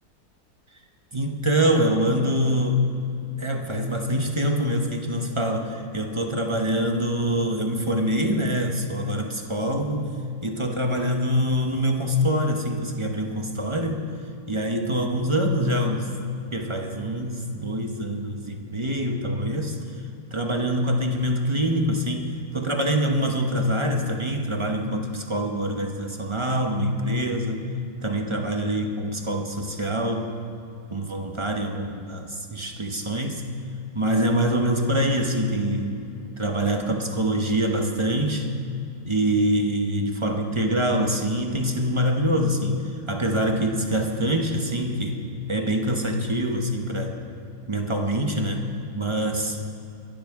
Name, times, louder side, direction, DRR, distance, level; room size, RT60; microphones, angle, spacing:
voice 1, 1.1-2.8 3.4-10.1 10.4-14.0 14.5-16.1 16.5-19.8 20.3-27.7 28.0-30.3 30.9-33.4 33.9-36.0 36.4-38.5 39.1-45.2 45.5-47.2 47.7-48.7 48.9-49.6, equal, 30° right, 3 dB, 0.6 m, -25 dB
22.5 x 12.5 x 3.7 m, 2.7 s
omnidirectional pair, 2.0 m